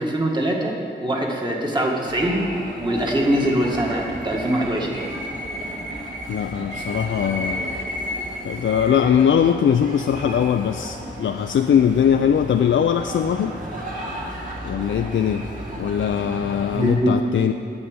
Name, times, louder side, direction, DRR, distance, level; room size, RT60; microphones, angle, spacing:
voice 1, 0.0-2.4 2.8-5.0 16.7-17.2, right 1 dB, 25° right, -1 dB, 1.7 m, -23 dB
sound 1, 2.1-17.0, equal, 40° right, 2.3 m, -33 dB
voice 2, 6.3-7.8 8.4-13.6 14.7-15.4 15.8-17.5, left 8 dB, 85° left, 6 dB, 0.4 m, -20 dB
9.7 x 7.5 x 8.7 m, 2.6 s
wide cardioid pair, 155°, 19 cm